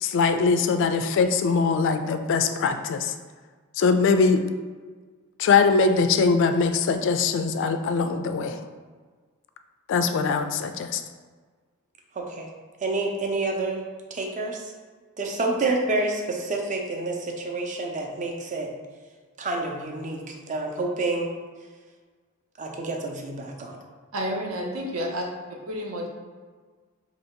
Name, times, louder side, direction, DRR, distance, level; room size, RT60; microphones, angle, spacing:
voice 1, 0.0-3.1 3.8-4.4 5.4-8.6 9.9-11.0, left 4 dB, 60° left, 8 dB, 0.3 m, -22 dB
voice 2, 12.2-12.5 12.8-13.8 14.1-14.7 15.2-18.7 19.4-21.3 22.6-23.8, right 2 dB, 35° right, 1 dB, 0.5 m, -28 dB
voice 3, 24.1-25.2 25.7-26.1, equal, 75° right, 0 dB, 0.7 m, -30 dB
2.9 x 2.7 x 4.4 m, 1.5 s
head